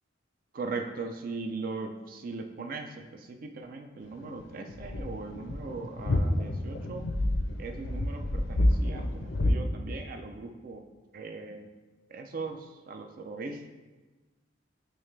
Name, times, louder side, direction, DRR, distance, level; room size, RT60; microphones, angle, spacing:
voice 1, 0.5-7.1 7.6-10.8 11.1-11.8 12.1-13.7, right 3 dB, 45° right, 5 dB, 0.4 m, -39 dB
sound 1, 4.0-9.5, left 1 dB, 80° left, 0.6 m, -28 dB
9.0 x 3.2 x 3.3 m, 1.2 s
head